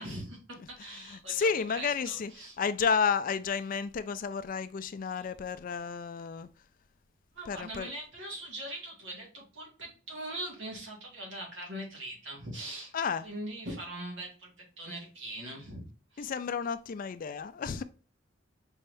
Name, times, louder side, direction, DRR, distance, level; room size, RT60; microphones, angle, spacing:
voice 1, 0.0-2.5 5.1-5.3 7.3-12.9 13.2-15.9 16.1-16.3, right 1 dB, 60° right, 1.9 m, -41 dB
voice 2, 1.0-2.3 2.6-6.5 7.5-7.9 12.9-13.3 16.2-17.8, left 6 dB, 40° left, 0.3 m, -31 dB
5.4 x 3.4 x 2.5 m
head